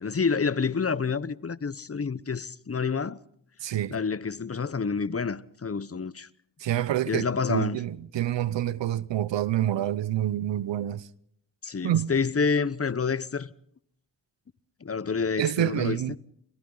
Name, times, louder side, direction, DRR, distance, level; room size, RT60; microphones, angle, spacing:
voice 1, 0.0-3.2 3.9-6.3 7.1-7.8 11.6-13.5 14.8-16.2, left 5 dB, 35° left, 1.0 m, -28 dB
voice 2, 3.6-3.9 6.6-11.0 11.8-12.1 15.4-16.2, right 12 dB, 85° right, 0.8 m, -27 dB
29.5 x 23.5 x 4.0 m
cardioid pair, 50°, 42 cm